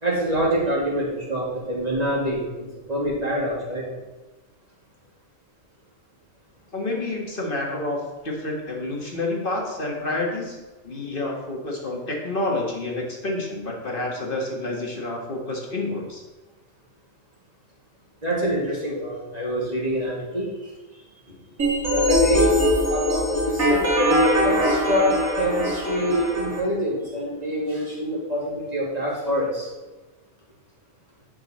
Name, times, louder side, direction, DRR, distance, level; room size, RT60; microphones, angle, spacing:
voice 1, 0.0-3.8 18.2-20.5 21.9-22.5 22.9-29.7, equal, 30° right, -4 dB, 2.5 m, -25 dB
voice 2, 6.7-10.6 10.8-16.2 21.3-21.4 21.7-21.8, left 2 dB, 40° left, -1 dB, 1.8 m, -29 dB
sound 1, 21.6-26.6, equal, 80° right, 2.9 m, -22 dB
10.0 x 5.9 x 4.3 m, 1.1 s
omnidirectional pair, 1.4 m